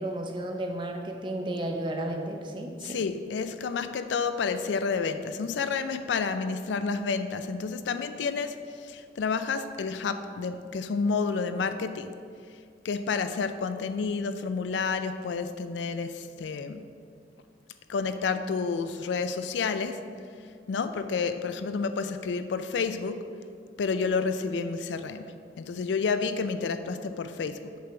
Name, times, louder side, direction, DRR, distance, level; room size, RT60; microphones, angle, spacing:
voice 1, 0.0-3.0, right 1 dB, 25° right, 3 dB, 0.6 m, -33 dB
voice 2, 2.8-12.1 12.8-16.9 17.9-20.0 20.7-23.3 23.8-27.7, left 5 dB, 75° left, 10 dB, 0.4 m, -30 dB
6.7 x 3.3 x 6.0 m, 2.2 s
head